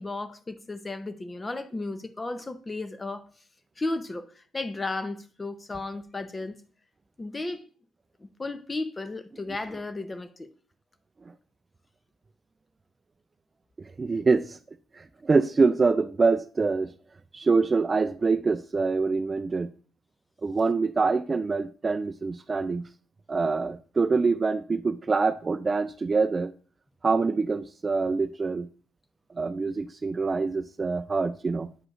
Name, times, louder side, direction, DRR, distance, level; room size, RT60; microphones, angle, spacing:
voice 1, 0.0-3.3 3.8-6.6 7.2-7.6 8.2-10.5, left 2 dB, 25° left, 0.6 m, -34 dB
voice 2, 14.0-14.6 14.9-16.9 17.3-19.7 20.4-22.8 23.3-26.5 27.0-28.7 29.4-31.7, right 4 dB, 30° right, 0.3 m, -25 dB
8.9 x 4.8 x 2.4 m
cardioid pair, 90°, 0 cm